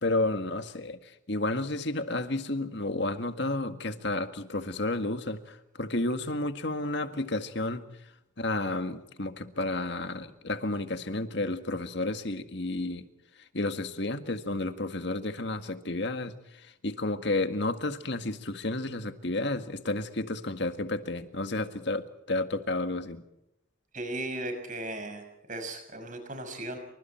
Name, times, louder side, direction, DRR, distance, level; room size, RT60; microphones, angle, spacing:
voice 1, 0.0-7.9 8.4-13.1 13.5-23.2, left 2 dB, 55° left, 9 dB, 1.9 m, -31 dB
voice 2, 23.9-25.2 25.5-26.8, right 2 dB, 40° right, 7 dB, 5.8 m, -36 dB
28.0 x 25.0 x 4.5 m, 0.84 s
head